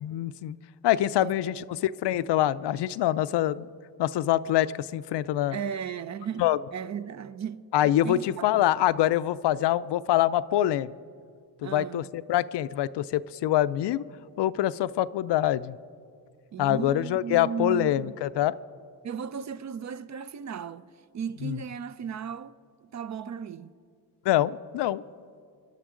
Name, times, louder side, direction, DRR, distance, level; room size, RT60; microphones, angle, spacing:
voice 1, 0.0-0.6 0.8-3.7 4.0-5.6 6.4-6.6 7.7-10.9 11.6-14.0 14.4-15.8 16.6-18.5 21.4-21.6 24.3-25.0, left 13 dB, 80° left, 0.5 m, -25 dB
voice 2, 1.2-1.7 5.5-6.5 6.7-7.6 8.0-8.8 11.6-12.1 16.5-18.2 19.0-20.9 21.1-22.5 22.9-23.7, right 7 dB, 45° right, 0.5 m, -35 dB
29.0 x 11.5 x 3.8 m
wide cardioid pair, 135°, 42 cm